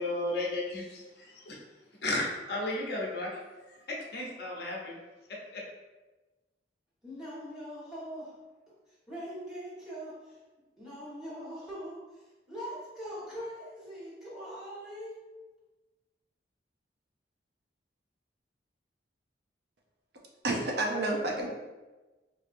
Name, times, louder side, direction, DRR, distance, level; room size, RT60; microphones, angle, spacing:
voice 1, 0.0-1.6 2.0-3.3 3.7-4.9 5.5-5.6, left 2 dB, 65° left, -2 dB, 0.8 m, -34 dB
voice 2, 7.0-8.4 8.9-10.4 10.8-15.2, equal, 5° right, -10 dB, 1.4 m, -42 dB
voice 3, 20.4-21.5, right 2 dB, 65° right, -1 dB, 0.6 m, -29 dB
4.5 x 2.6 x 2.5 m, 1.2 s
head